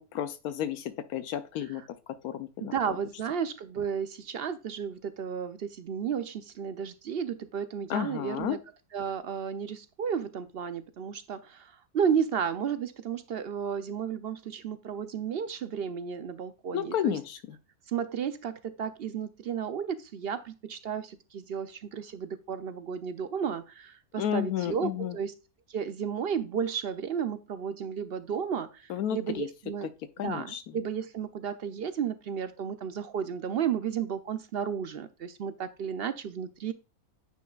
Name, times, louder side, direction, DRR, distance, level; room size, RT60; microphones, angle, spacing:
voice 1, 0.0-1.8 2.2-2.7 7.9-8.6 16.7-17.4 24.2-25.2 28.9-29.5 30.2-30.6, left 10 dB, 80° left, 11 dB, 1.2 m, -32 dB
voice 2, 2.6-8.6 8.9-17.2 17.9-25.3 25.7-29.9 30.2-36.7, right 7 dB, 60° right, 12 dB, 0.6 m, -33 dB
9.4 x 5.5 x 2.4 m, 0.29 s
omnidirectional pair, 1.6 m